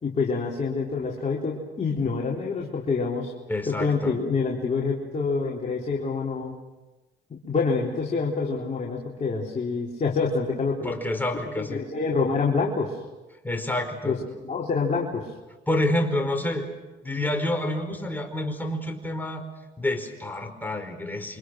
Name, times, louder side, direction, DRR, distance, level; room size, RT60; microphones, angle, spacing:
voice 1, 0.0-3.3 3.7-6.5 7.3-10.9 11.7-13.0 14.0-14.2 14.4-15.3, left 4 dB, 35° left, -3 dB, 3.8 m, -26 dB
voice 2, 3.5-4.1 10.8-11.8 13.4-14.1 15.7-16.7 17.0-19.4 19.8-21.4, left 1 dB, 10° left, 4 dB, 5.0 m, -28 dB
29.5 x 25.5 x 6.5 m, 1.1 s
cardioid pair, 90°, 20 cm